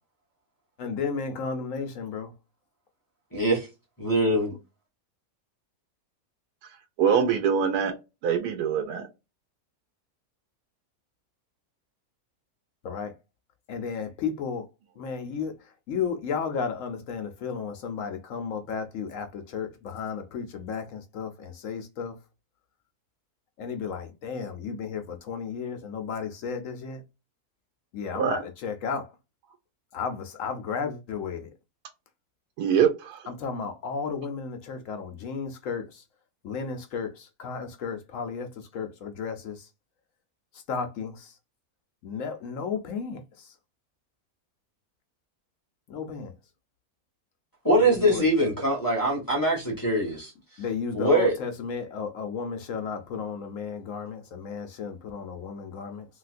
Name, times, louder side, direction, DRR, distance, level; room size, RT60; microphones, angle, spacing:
voice 1, 0.8-2.3 12.8-13.1 13.7-14.6 15.0-15.5 15.9-22.1 23.6-27.0 27.9-29.1 29.9-31.5 33.3-35.8 36.4-38.5 38.7-39.6 40.7-41.3 42.0-43.2 45.9-46.3 47.8-48.3 50.6-56.0, left 6 dB, 65° left, 0.9 m, -33 dB
voice 2, 3.3-3.7 4.0-4.5 47.6-50.3 50.9-51.4, right 1 dB, 15° left, 1.1 m, -23 dB
voice 3, 7.0-7.9 8.2-9.1 28.1-28.4 32.6-33.2, right 7 dB, 85° right, 1.1 m, -23 dB
3.2 x 2.8 x 2.4 m
omnidirectional pair, 1.6 m